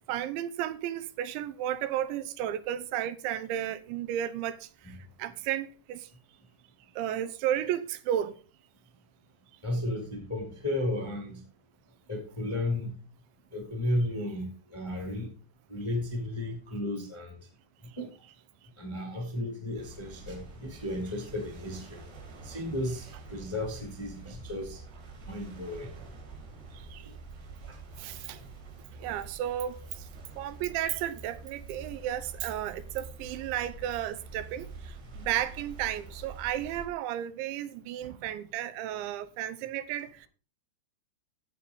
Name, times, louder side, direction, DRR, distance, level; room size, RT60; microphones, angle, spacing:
voice 1, 0.1-6.1 7.0-8.4 26.7-27.1 28.0-28.4 29.0-30.1 30.4-40.3, right 11 dB, 90° right, 3.1 m, -33 dB
voice 2, 9.6-11.4 12.1-12.9 13.5-15.3 15.7-17.4 18.0-18.1 18.8-22.0 22.4-24.8 25.3-25.9 27.7-27.8, left 1 dB, 25° left, 0.6 m, -34 dB
sound 1, 19.8-36.9, right 4 dB, 65° right, 5.1 m, -46 dB
14.0 x 8.2 x 3.9 m
omnidirectional pair, 5.3 m